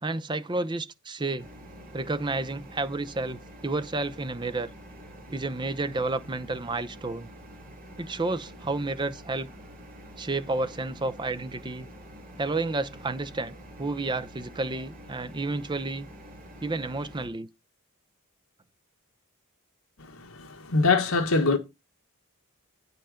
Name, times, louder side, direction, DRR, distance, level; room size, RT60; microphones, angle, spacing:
voice 1, 0.0-1.5 1.9-4.7 5.3-7.3 8.0-9.5 10.2-11.9 12.4-16.1 16.6-17.5, right 2 dB, 20° right, 0.6 m, -31 dB
sound 1, 1.4-17.3, equal, 40° right, 3.2 m, -47 dB
voice 2, 20.1-21.6, left 3 dB, 75° left, 1.5 m, -24 dB
9.2 x 5.5 x 5.0 m
head